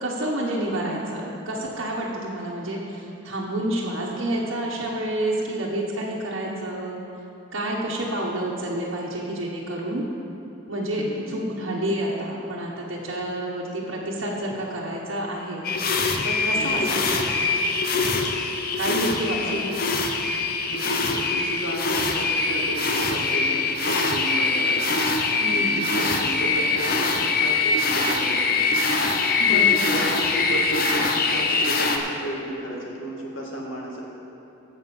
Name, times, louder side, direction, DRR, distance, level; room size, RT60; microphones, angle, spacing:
voice 1, 0.0-7.0 7.5-10.1 10.7-15.6 16.2-17.6 18.8-19.8 25.4-25.8 29.4-29.8, right 1 dB, 85° right, -6 dB, 1.4 m, -29 dB
voice 2, 11.0-11.3 16.5-16.9 18.4-18.7 19.4-20.0 20.5-24.9 25.5-28.6 28.9-29.2 29.5-34.0, right 1 dB, 85° left, -2 dB, 2.1 m, -33 dB
sound 1, 15.6-32.0, left 4 dB, 45° left, 0.8 m, -23 dB
14.5 x 5.4 x 7.2 m, 2.9 s
head